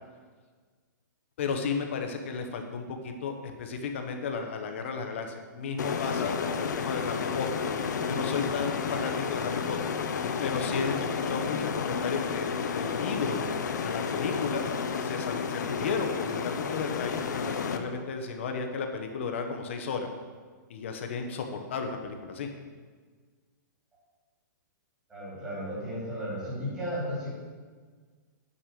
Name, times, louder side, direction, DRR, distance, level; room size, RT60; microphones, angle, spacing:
voice 1, 1.4-7.5 8.0-9.9 10.4-13.4 13.8-14.7 15.0-20.1 20.7-22.5, left 5 dB, 40° left, 5 dB, 1.0 m, -34 dB
sound 1, 5.8-17.8, left 6 dB, 65° left, 0.8 m, -31 dB
voice 2, 25.1-27.3, equal, 10° right, -9 dB, 3.0 m, -34 dB
9.0 x 5.5 x 6.9 m, 1.5 s
hypercardioid pair, 180°, 11 cm